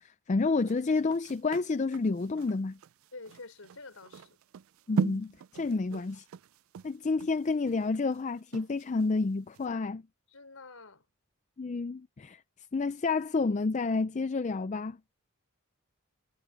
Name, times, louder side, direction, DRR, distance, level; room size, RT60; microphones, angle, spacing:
voice 1, 0.0-2.8 4.9-6.2 6.8-10.0 11.6-12.4 12.7-15.0, left 3 dB, 35° left, 0.4 m, -30 dB
sound 1, 0.6-9.1 9.5-9.7, right 5 dB, 80° right, 0.4 m, -38 dB
voice 2, 3.1-4.3 10.3-11.1, left 3 dB, 90° left, 4.0 m, -48 dB
head